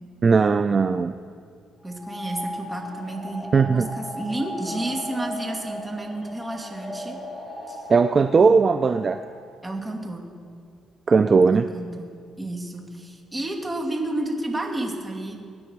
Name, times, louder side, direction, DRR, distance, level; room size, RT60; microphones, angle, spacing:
voice 1, 0.2-1.1 3.5-3.9 7.9-9.2 11.1-11.7, right 5 dB, 40° right, 10 dB, 0.5 m, -18 dB
voice 2, 1.8-7.2 7.7-7.8 8.3-8.7 9.6-10.3 11.5-15.4, right 1 dB, 15° right, 1 dB, 2.5 m, -31 dB
sound 1, 1.9-9.6, left 1 dB, 20° left, 3.9 m, -37 dB
24.0 x 9.6 x 4.7 m, 2.2 s
cardioid pair, 90°, 0 cm